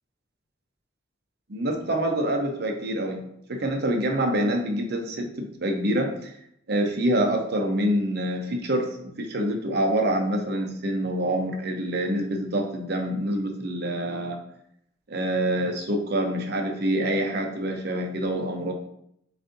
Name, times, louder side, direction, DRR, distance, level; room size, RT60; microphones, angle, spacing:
voice 1, 1.5-3.2 3.5-6.3 6.7-14.4 15.1-18.7, right 1 dB, 55° right, 3 dB, 0.7 m, -26 dB
7.3 x 2.6 x 2.7 m, 0.73 s
head